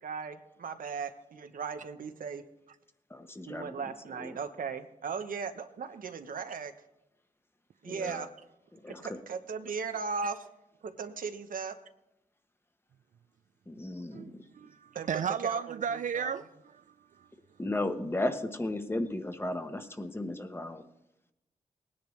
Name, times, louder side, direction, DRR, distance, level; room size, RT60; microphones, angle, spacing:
voice 1, 0.0-2.4 3.5-6.7 7.8-8.3 8.9-10.4 10.8-11.8 14.9-15.1 15.4-16.4, right 5 dB, 80° right, 0.9 m, -37 dB
voice 2, 3.1-3.7 4.2-4.3 7.9-8.3 8.7-9.2 13.7-14.3 17.6-20.8, left 1 dB, 15° left, 1.0 m, -35 dB
voice 3, 14.1-17.3, right 7 dB, 65° right, 0.4 m, -35 dB
19.0 x 10.0 x 3.2 m
wide cardioid pair, 105°, 14 cm